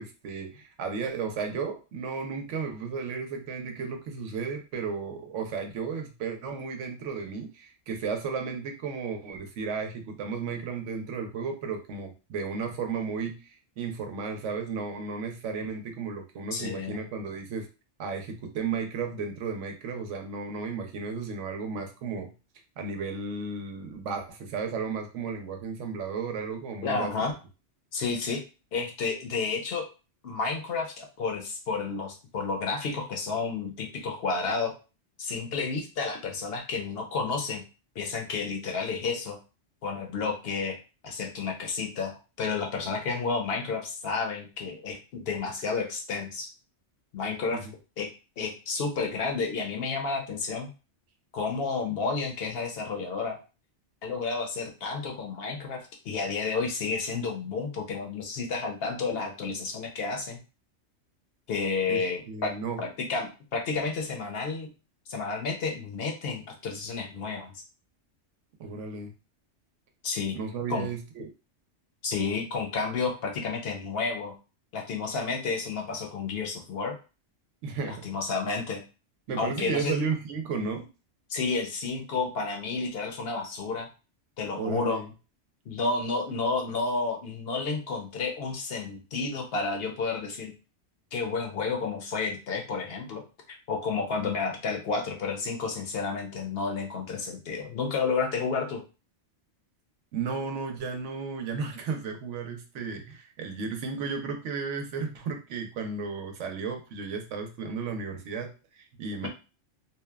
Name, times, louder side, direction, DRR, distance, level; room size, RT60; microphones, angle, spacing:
voice 1, 0.0-17.7 18.0-22.3 22.8-27.1 47.5-47.7 61.9-62.0 62.3-62.8 68.6-69.1 70.3-71.3 77.6-78.1 79.3-80.9 84.6-85.1 94.2-94.3 100.1-109.3, right 5 dB, 90° right, 4 dB, 1.0 m, -34 dB
voice 2, 16.5-17.0 26.8-27.3 27.9-28.4 28.7-29.9 30.2-34.7 35.2-37.6 38.0-39.4 39.8-40.8 41.0-42.1 42.4-46.5 47.1-47.7 48.0-48.1 48.4-50.7 51.3-53.4 54.0-55.8 56.0-60.4 61.5-64.7 65.1-67.5 70.0-70.3 70.7-70.9 72.0-74.3 74.7-77.0 77.8-78.8 79.4-80.0 81.3-83.9 84.4-85.0 85.7-90.5 91.1-98.8 109.2-109.3, left 4 dB, 65° left, 3 dB, 0.7 m, -31 dB
2.8 x 2.1 x 2.2 m, 0.32 s
omnidirectional pair, 1.2 m